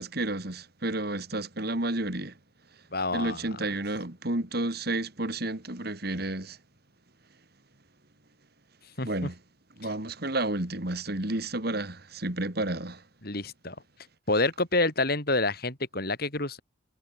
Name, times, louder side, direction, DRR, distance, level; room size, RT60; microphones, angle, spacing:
voice 1, 0.0-2.3 3.1-6.6 9.0-9.3 9.8-13.0, right 2 dB, 50° right, 2.7 m, -31 dB
voice 2, 2.9-3.6 9.0-9.3 13.2-13.8 14.3-16.6, left 2 dB, 50° left, 6.2 m, -28 dB
head